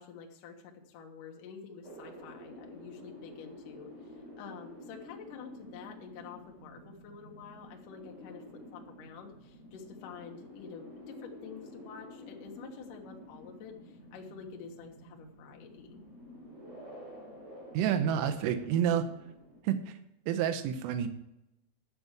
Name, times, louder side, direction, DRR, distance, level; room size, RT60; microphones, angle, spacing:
voice 1, 0.0-8.4 8.7-16.0, left 6 dB, 80° left, 1 dB, 1.9 m, -48 dB
sound 1, 1.8-19.6, left 1 dB, 15° right, 3.8 m, -50 dB
voice 2, 17.8-19.0 19.7-19.9 20.3-21.1, right 9 dB, 80° right, 8 dB, 3.4 m, -29 dB
11.0 x 6.9 x 7.3 m, 0.88 s
omnidirectional pair, 6.0 m